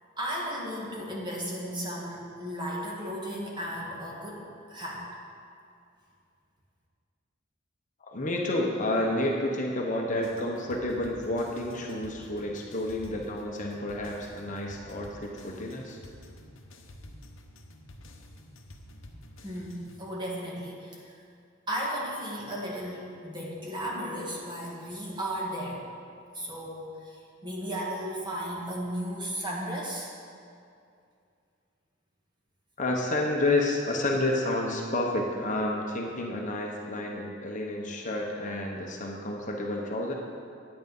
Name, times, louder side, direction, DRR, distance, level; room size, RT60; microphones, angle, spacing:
voice 1, 0.2-4.4 4.7-5.1 19.4-21.2 21.7-25.8 26.3-30.1, equal, 20° right, -3 dB, 1.8 m, -35 dB
voice 2, 8.1-16.0 32.8-40.1, left 1 dB, 35° left, 0 dB, 1.0 m, -30 dB
sound 1, 10.2-20.0, left 1 dB, 65° left, 1.0 m, -49 dB
10.0 x 8.8 x 5.4 m, 2.4 s
head